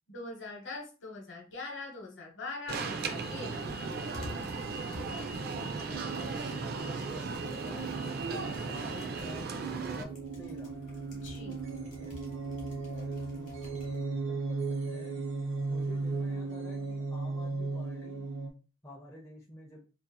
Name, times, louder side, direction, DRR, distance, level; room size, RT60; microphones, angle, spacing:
voice 1, 0.1-3.7 11.1-11.6, left 3 dB, 65° left, 1 dB, 0.8 m, -42 dB
sound 1, 2.7-14.0, left 2 dB, 40° left, 1.2 m, -50 dB
Alarm, 2.7-10.0, right 4 dB, 50° right, 0.3 m, -36 dB
voice 2, 5.3-10.7 11.7-12.2 12.9-14.6 14.9-18.2 18.8-19.8, left 1 dB, 15° left, -3 dB, 0.5 m, -50 dB
sound 2, 5.3-18.5, right 3 dB, 70° right, 0.7 m, -37 dB
2.8 x 2.4 x 2.2 m, 0.33 s
head